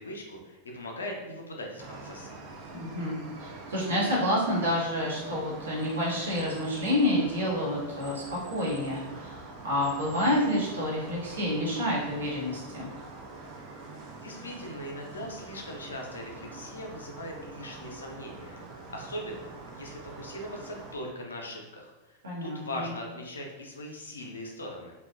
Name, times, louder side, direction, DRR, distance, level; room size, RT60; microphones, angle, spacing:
voice 1, 0.0-2.4 14.2-24.9, left 1 dB, 70° left, 1 dB, 0.4 m, -40 dB
sound 1, 1.8-21.0, right 3 dB, 40° right, 0.4 m, -45 dB
voice 2, 2.7-12.9 22.2-22.9, left 1 dB, 70° right, -5 dB, 0.9 m, -29 dB
2.8 x 2.2 x 2.4 m, 1.1 s
figure-of-eight pair, 90°, 0 cm